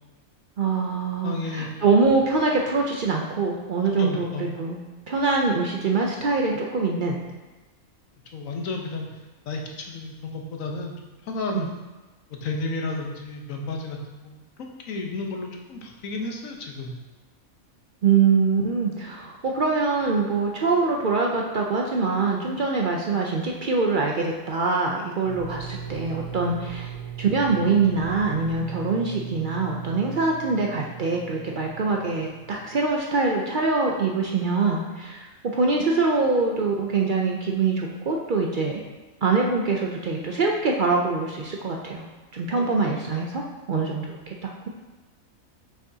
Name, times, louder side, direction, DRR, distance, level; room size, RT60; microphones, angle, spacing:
voice 1, 0.6-4.8 5.1-7.2 11.5-11.7 18.0-26.9 27.2-35.3 35.5-38.8 39.2-42.0 42.3-43.4 43.7-44.7, right 4 dB, 60° right, 0 dB, 0.5 m, -24 dB
voice 2, 1.2-1.9 4.0-4.5 8.3-9.1 9.5-11.7 12.3-17.0 42.5-42.7, left 3 dB, 70° left, 1 dB, 1.2 m, -32 dB
sound 1, 25.2-33.0, right 7 dB, 90° right, 1.2 m, -38 dB
6.8 x 6.0 x 2.7 m, 1.1 s
omnidirectional pair, 1.5 m